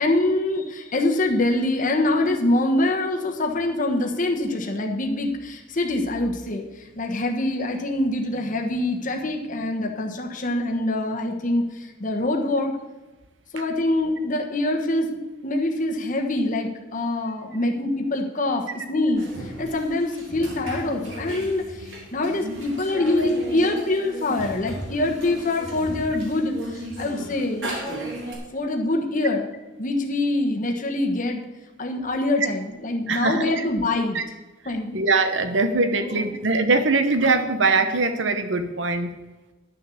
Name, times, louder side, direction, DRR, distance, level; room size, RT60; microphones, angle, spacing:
voice 1, 0.0-12.8 13.5-27.8 28.5-29.5 29.8-31.5 31.8-34.2 34.6-34.9 35.9-36.3, left 2 dB, 45° left, 2 dB, 1.2 m, -25 dB
sound 1, 19.1-28.3, right 1 dB, 90° right, 3.7 m, -35 dB
voice 2, 33.1-33.6 34.1-34.2 34.9-39.1, right 3 dB, 70° right, 8 dB, 1.0 m, -22 dB
11.0 x 6.8 x 7.1 m, 1.2 s
head